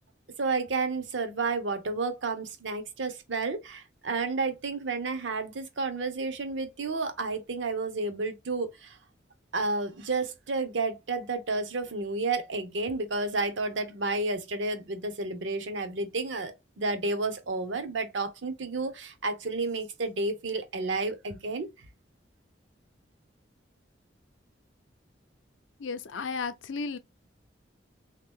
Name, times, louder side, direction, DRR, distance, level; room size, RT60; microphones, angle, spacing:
voice 1, 0.4-9.0 9.5-21.7, right 3 dB, 80° right, 0.8 m, -31 dB
voice 2, 25.8-27.0, left 4 dB, 90° left, 0.5 m, -34 dB
3.3 x 2.9 x 3.5 m
head